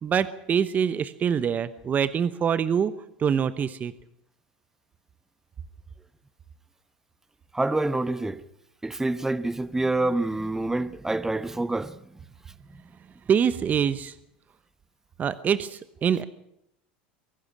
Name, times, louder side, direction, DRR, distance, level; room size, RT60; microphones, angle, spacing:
voice 1, 0.0-2.9 3.2-3.9 13.3-14.1 15.2-16.2, right 7 dB, 35° right, 0.9 m, -24 dB
voice 2, 7.5-8.4 8.8-12.0, right 2 dB, 10° right, 0.9 m, -27 dB
23.0 x 12.0 x 9.9 m
hypercardioid pair, 90°, 5 cm